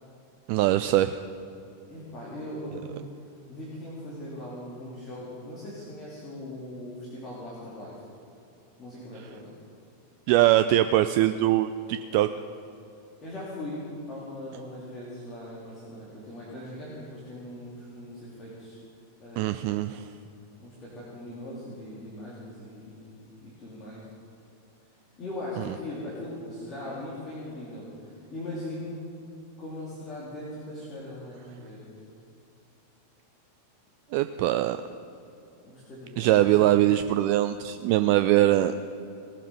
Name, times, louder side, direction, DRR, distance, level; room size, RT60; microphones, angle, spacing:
voice 1, 0.5-1.2 10.3-12.3 19.4-20.1 34.1-34.8 36.2-38.7, right 14 dB, 45° right, 10 dB, 0.4 m, -22 dB
voice 2, 1.9-3.1 3.5-8.0 8.8-9.5 13.2-13.8 14.1-18.8 19.2-19.8 20.6-24.1 25.2-29.0 29.6-31.9 35.6-36.5, left 1 dB, 25° left, -8 dB, 3.1 m, -40 dB
18.5 x 7.3 x 5.6 m, 2.7 s
figure-of-eight pair, 90°, 0 cm